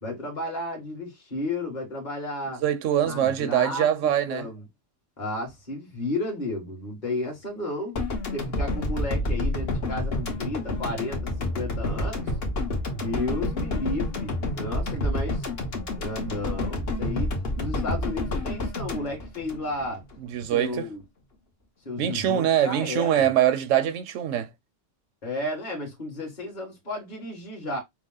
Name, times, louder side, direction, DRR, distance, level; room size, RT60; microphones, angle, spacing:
voice 1, 0.0-2.6 3.0-3.9 4.3-4.7 5.2-7.9 8.3-12.3 12.9-15.5 16.0-17.3 17.6-20.0 20.5-21.0 21.9-23.3 25.2-27.8, left 1 dB, 40° left, 1.8 m, -33 dB
voice 2, 2.6-4.5 20.3-20.9 22.0-24.5, right 10 dB, 85° right, 1.0 m, -23 dB
sound 1, 8.0-20.2, left 2 dB, 55° left, 1.4 m, -29 dB
6.0 x 2.2 x 3.8 m
omnidirectional pair, 1.3 m